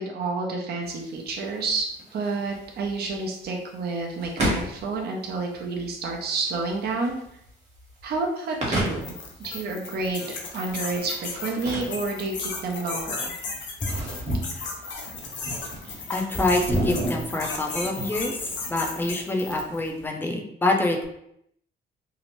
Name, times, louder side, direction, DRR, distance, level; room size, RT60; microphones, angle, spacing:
voice 1, 0.0-1.9 2.1-7.2 8.0-9.1 9.4-13.3, right 3 dB, 55° right, 0 dB, 0.6 m, -29 dB
sound 1, 0.8-20.0, right 1 dB, 35° right, 1.0 m, -34 dB
sound 2, 8.9-19.8, left 4 dB, 70° left, 0.6 m, -35 dB
voice 2, 16.1-18.4 18.7-21.1, left 2 dB, 10° left, 1 dB, 0.5 m, -26 dB
2.7 x 2.1 x 3.0 m, 0.74 s
cardioid pair, 90°, 20 cm